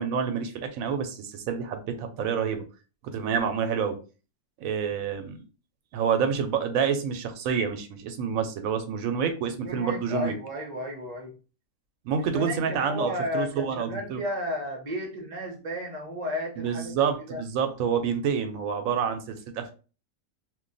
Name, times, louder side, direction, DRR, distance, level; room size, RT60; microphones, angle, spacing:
voice 1, 0.0-2.6 3.0-4.0 4.6-5.4 5.9-10.3 12.0-14.2 16.6-19.7, right 7 dB, 85° right, 7 dB, 1.0 m, -28 dB
voice 2, 9.6-11.3 12.1-17.4, left 1 dB, 35° right, 2 dB, 0.7 m, -33 dB
2.4 x 2.2 x 3.8 m, 0.34 s
omnidirectional pair, 1.4 m